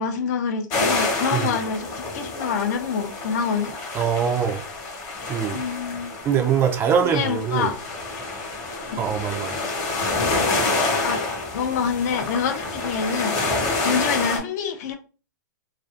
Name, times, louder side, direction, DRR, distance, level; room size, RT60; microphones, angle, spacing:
voice 1, 0.0-3.7 5.5-6.1 7.0-7.8 8.8-9.0 11.0-11.2 11.5-13.3 13.8-14.9, left 6 dB, 55° left, 0.6 m, -26 dB
sound 1, 0.7-14.4, left 3 dB, 35° left, 0.9 m, -27 dB
voice 2, 3.9-4.6 5.3-5.6 6.2-7.7 9.0-9.6, right 7 dB, 20° right, 0.3 m, -23 dB
2.5 x 2.4 x 2.4 m
hypercardioid pair, 130°, 11 cm